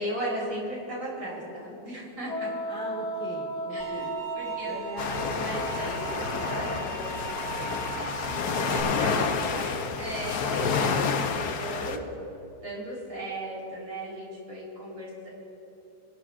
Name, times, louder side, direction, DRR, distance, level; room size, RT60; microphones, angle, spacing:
voice 1, 0.0-2.5 3.7-4.1 4.3-4.8 5.4-7.1 7.9-8.1 8.6-12.1 12.6-15.3, right 1 dB, 65° right, -5 dB, 4.3 m, -36 dB
Wind instrument woodwind instrument, 2.2-7.0, equal, 85° left, 1.7 m, -36 dB
voice 2, 2.7-4.2 4.6-5.9 8.5-9.1, right 1 dB, 5° left, -4 dB, 3.3 m, -41 dB
sound 1, 3.8-8.8, right 8 dB, 35° left, 3.7 m, -39 dB
sound 2, 5.0-12.0, left 5 dB, 65° left, 1.2 m, -29 dB
26.5 x 12.5 x 2.5 m, 3.0 s
omnidirectional pair, 2.2 m